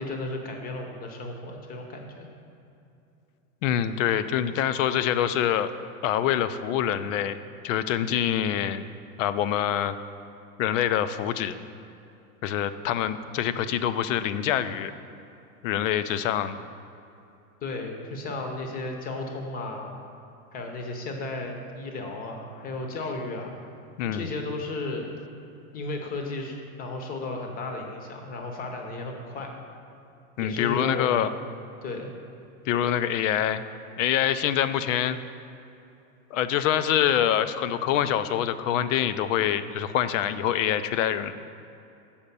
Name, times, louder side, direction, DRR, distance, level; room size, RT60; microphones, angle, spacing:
voice 1, 0.0-2.3 17.6-19.9 20.5-23.5 24.0-25.1 25.7-29.5 30.4-31.4 31.8-32.1, left 2 dB, 20° left, 3 dB, 0.8 m, -34 dB
voice 2, 3.6-5.7 6.0-7.4 7.6-8.8 9.2-10.0 10.6-11.6 12.4-14.9 15.6-16.6 24.0-24.3 30.4-31.3 32.7-33.6 34.0-35.2 36.3-41.3, left 10 dB, 60° left, 12 dB, 0.5 m, -25 dB
7.2 x 5.1 x 6.7 m, 2.7 s
supercardioid pair, 155°, 43 cm